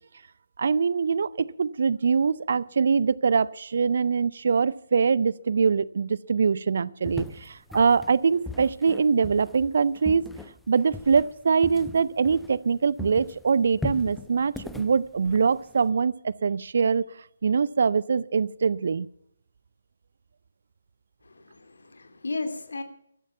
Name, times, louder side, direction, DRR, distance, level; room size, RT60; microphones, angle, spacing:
voice 1, 0.6-10.3 10.7-17.1 17.4-19.1, right 5 dB, 55° right, 21 dB, 0.5 m, -23 dB
sound 1, 7.0-12.7 13.0-15.9, left 2 dB, ahead, 0.8 m, -39 dB
voice 2, 21.2-22.8, left 3 dB, 65° left, 8 dB, 2.6 m, -34 dB
14.5 x 13.0 x 5.7 m, 0.71 s
figure-of-eight pair, 140°, 0 cm